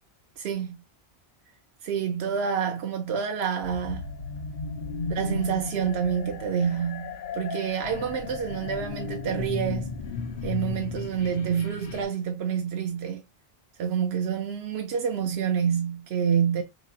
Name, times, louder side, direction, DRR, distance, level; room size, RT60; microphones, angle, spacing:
voice 1, 0.4-0.8 1.8-4.0 5.2-9.9 10.4-13.2 13.8-16.6, right 7 dB, 80° right, 0.8 m, -28 dB
sound 1, 3.6-12.0, left 4 dB, 55° left, 0.7 m, -35 dB
3.9 x 3.0 x 2.3 m
omnidirectional pair, 1.0 m